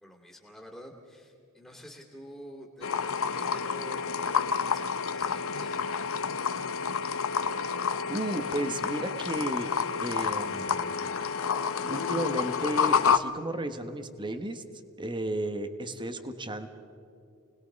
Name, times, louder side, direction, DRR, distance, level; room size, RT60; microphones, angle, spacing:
voice 1, 0.0-6.1 6.4-6.6, equal, 5° left, -2 dB, 2.5 m, -48 dB
sound 1, 2.8-13.2, left 6 dB, 65° left, 0.8 m, -29 dB
voice 2, 8.1-9.7 10.0-11.0 11.8-14.6 15.0-16.7, right 1 dB, 20° right, 9 dB, 1.3 m, -33 dB
29.5 x 20.0 x 5.3 m, 2.5 s
head